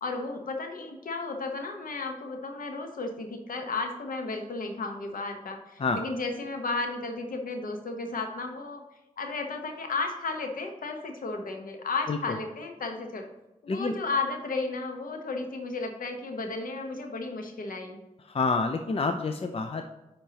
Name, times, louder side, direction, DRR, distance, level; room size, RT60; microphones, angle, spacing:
voice 1, 0.0-8.8 9.2-13.3 13.6-18.0, left 3 dB, 85° left, 4 dB, 1.0 m, -33 dB
voice 2, 18.2-19.8, left 4 dB, 45° left, 6 dB, 0.5 m, -28 dB
10.0 x 4.5 x 2.9 m, 1.0 s
cardioid pair, 65°, 14 cm